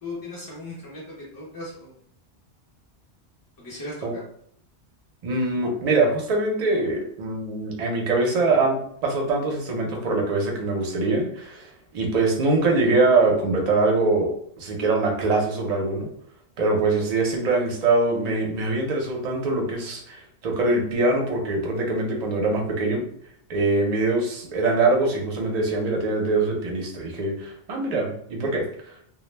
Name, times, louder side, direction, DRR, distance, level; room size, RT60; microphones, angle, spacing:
voice 1, 0.0-2.0 3.6-4.2, left 2 dB, 30° left, -7 dB, 0.4 m, -37 dB
voice 2, 5.2-11.7 11.9-16.1 16.6-23.0 23.5-28.6, right 3 dB, 45° right, 0 dB, 0.5 m, -23 dB
2.2 x 2.1 x 3.1 m, 0.66 s
omnidirectional pair, 1.2 m